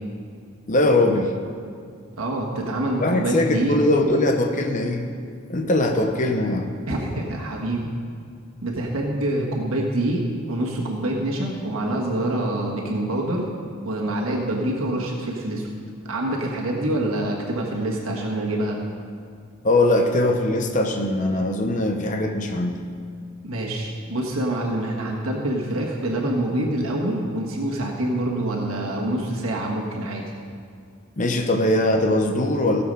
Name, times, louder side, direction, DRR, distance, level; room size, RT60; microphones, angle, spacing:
voice 1, 0.7-1.3 3.0-5.1 5.5-6.8 19.6-22.8 31.2-32.8, left 1 dB, 35° left, 4 dB, 0.8 m, -21 dB
voice 2, 2.2-3.8 6.9-7.9 8.6-13.5 13.8-15.7 16.1-18.8 23.4-30.2, right 1 dB, 75° right, -2 dB, 1.5 m, -26 dB
16.0 x 7.0 x 5.3 m, 2.3 s
head